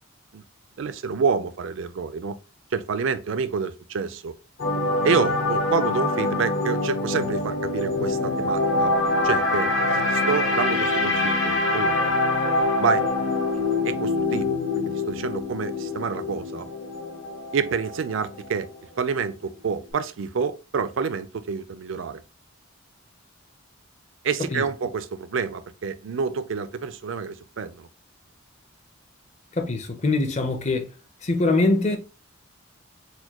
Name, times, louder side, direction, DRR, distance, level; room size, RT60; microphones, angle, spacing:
voice 1, 0.8-2.4 2.7-4.3 5.0-8.9 9.2-12.1 12.8-13.1 13.5-14.6 15.1-16.7 17.5-18.7 19.0-22.2 24.2-27.9, right 5 dB, 65° right, 0.4 m, -28 dB
sound 1, 4.6-18.8 19.1-19.3, left 2 dB, 70° left, 1.0 m, -25 dB
voice 2, 29.6-30.9 31.2-32.0, left 2 dB, 30° left, 0.5 m, -23 dB
4.2 x 2.2 x 2.9 m
head